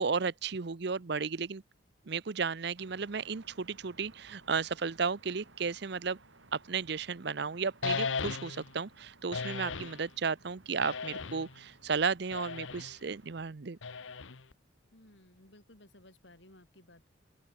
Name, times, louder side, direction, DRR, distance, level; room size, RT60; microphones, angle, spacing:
voice 1, 0.0-1.6 2.1-6.2 6.5-13.8, right 5 dB, 60° right, 0.7 m, -34 dB
sound 1, 2.8-13.5, right 2 dB, 75° right, 3.5 m, -60 dB
sound 2, 7.8-8.7 9.3-10.0 10.8-11.6 12.3-12.9 13.8-14.5, left 5 dB, 85° left, 1.1 m, -36 dB
voice 2, 14.9-17.1, left 1 dB, 70° left, 6.4 m, -58 dB
open air
head